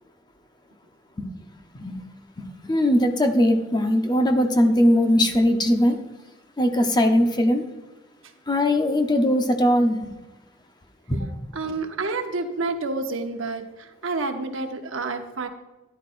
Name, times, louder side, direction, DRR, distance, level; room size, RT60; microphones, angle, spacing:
voice 1, 2.4-6.0 6.6-7.6 8.5-10.2 11.1-11.3, left 1 dB, 20° left, 5 dB, 0.8 m, -20 dB
voice 2, 11.5-15.5, right 3 dB, 90° right, 6 dB, 0.9 m, -29 dB
13.0 x 11.0 x 2.6 m, 1.1 s
head